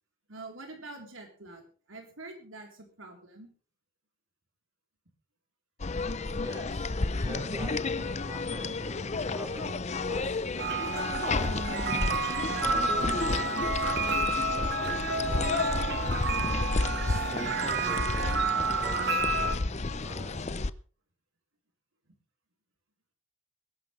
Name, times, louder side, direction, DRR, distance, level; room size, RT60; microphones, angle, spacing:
voice 1, 0.3-3.5 22.1-22.2, right 2 dB, 75° right, 2 dB, 3.8 m, -46 dB
sound 1, 5.8-20.7, left 3 dB, 35° left, 0.6 m, -31 dB
voice 2, 6.4-12.2 12.5-16.2 16.5-20.5, right 1 dB, 15° right, 2 dB, 5.9 m, -45 dB
sound 2, 10.6-19.6, right 3 dB, 55° right, 1.6 m, -30 dB
22.0 x 12.0 x 3.3 m, 0.40 s
head